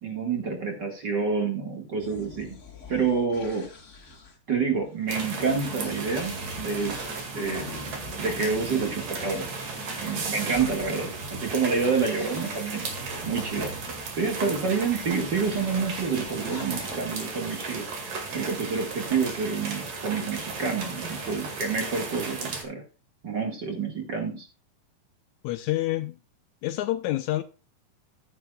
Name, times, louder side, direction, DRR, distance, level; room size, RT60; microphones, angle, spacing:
voice 1, 0.0-2.6 2.9-3.7 4.5-7.1 7.3-7.7 8.2-9.5 10.0-12.8 13.2-13.8 14.2-17.9 18.3-22.8 23.2-24.5, right 5 dB, 40° right, 2.2 m, -28 dB
sound 1, 2.0-14.1 14.9-17.0, left 2 dB, 30° left, 1.4 m, -43 dB
sound 2, 5.1-22.6, right 4 dB, 60° right, 3.2 m, -35 dB
voice 2, 25.4-26.2 26.6-27.4, left 15 dB, 80° left, 1.8 m, -27 dB
14.5 x 8.3 x 2.4 m
omnidirectional pair, 3.6 m